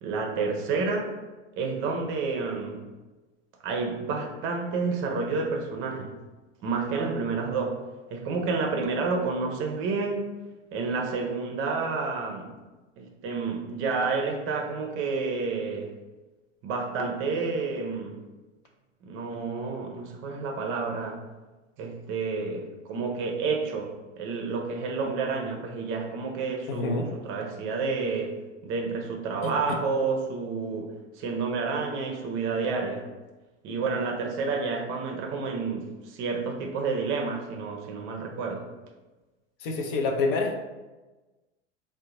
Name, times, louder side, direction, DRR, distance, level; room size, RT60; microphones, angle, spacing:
voice 1, 0.0-1.1 1.6-2.8 3.6-6.1 6.6-7.8 8.1-10.3 10.7-12.5 13.0-15.9 16.6-18.2 19.0-21.2 21.8-28.4 28.6-33.1 33.6-38.7, right 4 dB, 35° right, 1 dB, 0.6 m, -30 dB
voice 2, 26.7-27.1 29.4-29.5 39.6-40.5, left 3 dB, 50° left, 3 dB, 0.6 m, -27 dB
3.6 x 2.2 x 2.9 m, 1.2 s
hypercardioid pair, 95°, 37 cm